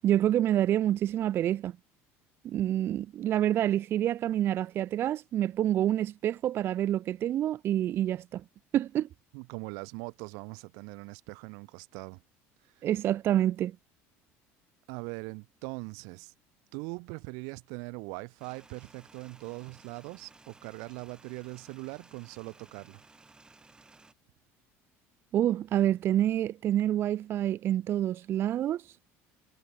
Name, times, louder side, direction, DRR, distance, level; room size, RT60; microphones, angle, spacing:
voice 1, 0.0-1.7 2.4-8.4 8.7-9.1 12.8-13.8 25.3-29.0, right 12 dB, 40° right, 0.3 m, -27 dB
voice 2, 9.3-12.2 14.9-16.3 16.7-23.0, right 35 dB, 80° right, 1.4 m, -41 dB
sound 1, 18.4-24.1, right 3 dB, 15° right, 4.4 m, -57 dB
cardioid pair, 130°, 6 cm